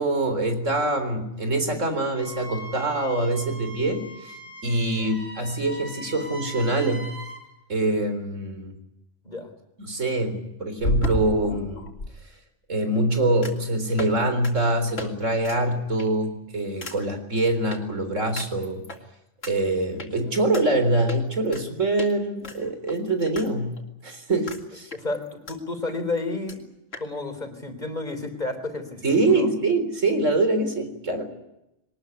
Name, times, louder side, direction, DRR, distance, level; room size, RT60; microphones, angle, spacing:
voice 1, 0.0-4.3 4.6-7.1 7.7-8.7 9.8-11.9 12.7-18.8 19.4-23.8 24.0-24.9 29.0-31.2, right 2 dB, 85° right, 8 dB, 4.4 m, -24 dB
Wind instrument woodwind instrument, 2.1-7.4, right 1 dB, 45° right, 7.0 m, -41 dB
sound 1, 8.3-8.4 10.8-12.1 13.4-13.7 14.0-14.2 14.4-14.5 15.0-15.1 15.4-15.6 16.0-16.3 16.8-17.0 17.7-17.8 18.4-19.0 19.4-19.5 20.0-20.1 20.5-20.6 21.1-21.6 22.0-22.1 22.4-23.5 23.8-23.9 24.5-24.6 24.9-25.6 25.9-26.0 26.2-26.3 26.5-26.6 26.9-27.1, left 2 dB, 80° left, 3.3 m, -32 dB
voice 2, 24.9-26.6 27.0-29.5, left 2 dB, 35° left, 8 dB, 3.8 m, -31 dB
22.0 x 20.0 x 9.7 m, 0.89 s
omnidirectional pair, 1.3 m